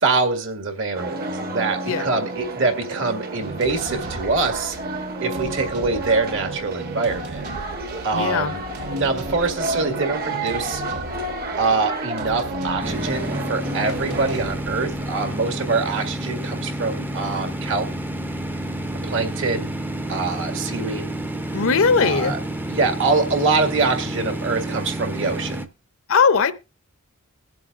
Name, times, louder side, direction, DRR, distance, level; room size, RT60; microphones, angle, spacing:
voice 1, 0.0-4.8 5.2-7.4 8.0-8.6 8.9-10.8 11.6-17.9 19.0-19.7 20.1-21.1 22.0-22.4 22.7-25.6, right 3 dB, 60° right, 1.9 m, -24 dB
sound 1, 0.9-14.4, right 2 dB, 45° right, 1.2 m, -30 dB
sound 2, 3.4-16.1, right 3 dB, 90° right, 1.3 m, -38 dB
voice 2, 8.1-8.5 21.5-22.4 26.1-26.5, left 5 dB, 60° left, 0.8 m, -19 dB
sound 3, 12.8-25.7, right 1 dB, 10° right, 0.6 m, -29 dB
22.0 x 7.6 x 2.5 m
head